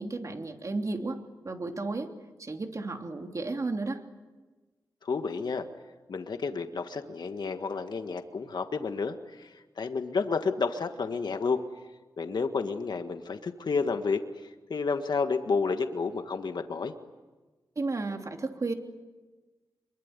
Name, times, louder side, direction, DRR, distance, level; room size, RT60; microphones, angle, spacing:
voice 1, 0.0-2.1 2.4-4.0 17.7-18.7, right 3 dB, 45° right, 4 dB, 3.2 m, -33 dB
voice 2, 5.0-5.7 6.1-11.6 12.2-14.2 14.7-16.9, left 4 dB, 65° left, 7 dB, 1.7 m, -30 dB
26.5 x 23.0 x 9.7 m, 1.3 s
cardioid pair, 65°, 8 cm